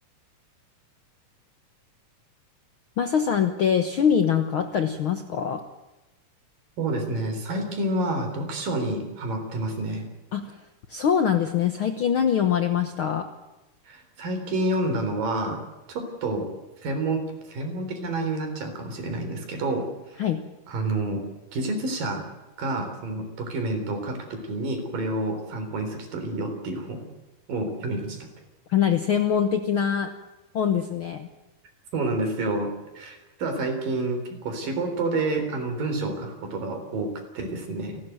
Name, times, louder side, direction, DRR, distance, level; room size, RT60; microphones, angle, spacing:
voice 1, 3.0-5.6 10.3-10.6 10.9-13.3 20.2-20.4 28.7-30.1 30.5-31.3, left 8 dB, 70° left, 8 dB, 1.2 m, -23 dB
voice 2, 6.8-10.1 13.9-15.6 15.9-16.5 16.8-20.2 20.7-21.2 21.5-22.2 22.6-27.0 27.5-28.2 31.9-38.0, right 2 dB, 85° right, 6 dB, 5.5 m, -29 dB
29.0 x 13.0 x 9.1 m, 1.1 s
omnidirectional pair, 3.8 m